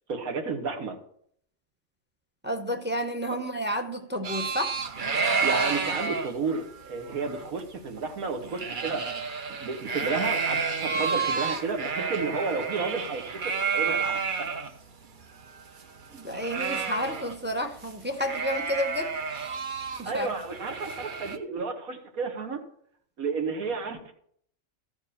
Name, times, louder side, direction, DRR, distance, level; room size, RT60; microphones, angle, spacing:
voice 1, 0.1-1.0 5.4-9.0 9.6-13.4 13.7-14.6 20.0-22.6 23.2-24.1, right 4 dB, 85° right, 1.9 m, -32 dB
voice 2, 2.4-4.8 16.1-19.2 20.0-20.3, equal, 10° right, 0.5 m, -31 dB
sound 1, 4.2-14.7 15.0-15.1 15.4-17.5 17.8-17.9 18.2-21.4, right 5 dB, 45° right, 0.8 m, -30 dB
14.0 x 4.7 x 7.0 m
omnidirectional pair, 1.5 m